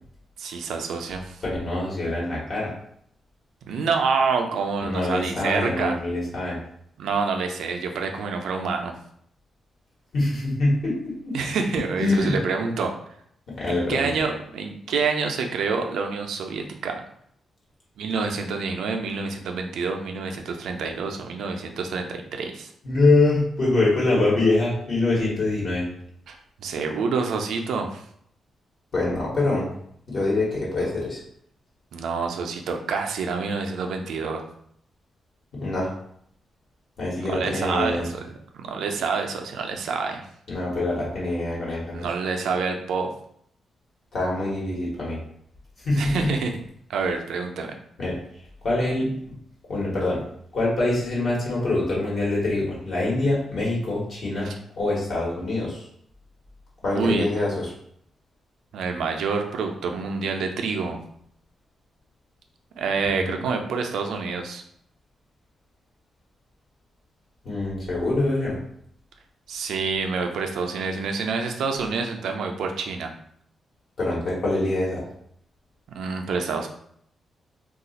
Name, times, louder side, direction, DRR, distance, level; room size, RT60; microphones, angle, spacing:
voice 1, 0.4-1.4 3.7-6.0 7.0-9.0 11.3-12.9 13.7-17.0 18.0-22.7 26.3-28.0 31.9-34.5 37.3-38.2 38.5-40.2 41.9-43.1 46.0-46.6 46.9-47.7 54.4-54.5 56.9-57.3 58.7-61.0 62.8-64.6 69.5-73.1 75.9-76.7, right 4 dB, 90° right, 4 dB, 0.4 m, -27 dB
voice 2, 1.5-2.7 4.8-6.6 10.1-11.4 12.0-12.4 13.5-14.1 22.8-25.9 28.9-29.7 30.1-31.2 35.5-35.9 37.0-38.1 40.5-42.1 44.1-45.2 45.8-46.3 48.0-48.2 48.6-49.2 49.7-50.2 50.5-54.5 54.8-55.9 56.8-57.7 63.1-63.4 67.4-68.6 74.0-75.0, left 2 dB, 60° left, -5 dB, 1.1 m, -24 dB
2.4 x 2.4 x 4.0 m, 0.68 s
cardioid pair, 115°, 0 cm